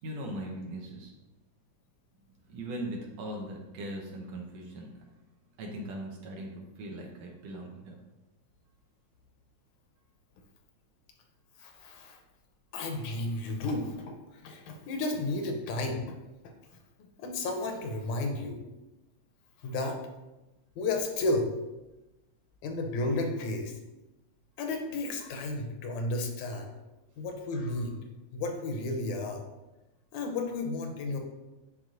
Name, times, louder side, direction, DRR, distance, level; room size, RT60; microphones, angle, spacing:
voice 1, 0.0-1.1 2.4-5.1 5.6-8.0, right 1 dB, 70° right, 0 dB, 2.0 m, -39 dB
voice 2, 11.6-12.2 12.7-16.2 17.2-18.6 19.6-20.0 20.8-21.5 22.6-23.7 24.6-26.7 27.2-28.0 28.3-29.4 30.1-31.2, left 2 dB, 80° left, 4 dB, 2.1 m, -32 dB
11.0 x 3.7 x 2.6 m, 1.0 s
omnidirectional pair, 3.4 m